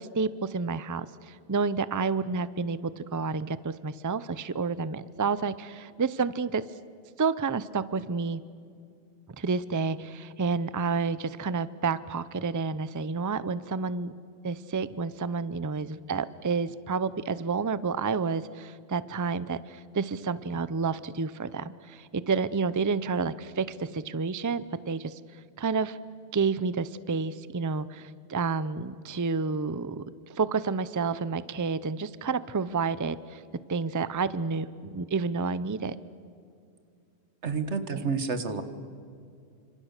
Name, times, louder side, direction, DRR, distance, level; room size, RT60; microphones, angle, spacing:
voice 1, 0.0-6.6 7.2-8.4 9.4-14.1 14.4-25.2 25.6-26.0 26.3-30.0 30.3-33.4 33.7-36.0 37.9-38.0, right 4 dB, 20° right, 16 dB, 0.5 m, -30 dB
voice 2, 37.4-38.6, right 5 dB, 85° right, 10 dB, 1.8 m, -29 dB
29.0 x 26.0 x 6.7 m, 2.4 s
omnidirectional pair, 1.1 m